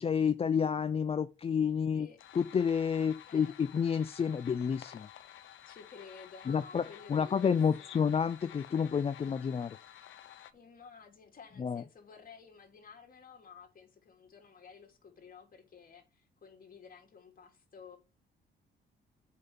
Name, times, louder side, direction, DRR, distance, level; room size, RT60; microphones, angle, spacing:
voice 1, 0.0-2.1 2.4-5.1 6.5-6.8 7.1-9.8 11.6-11.8, left 7 dB, 30° left, 0.4 m, -29 dB
sound 1, 2.2-10.5, left 11 dB, 75° left, 0.8 m, -52 dB
voice 2, 5.6-8.1 10.5-18.0, left 5 dB, 45° left, 2.9 m, -53 dB
7.5 x 5.7 x 5.5 m
cardioid pair, 90°, 20 cm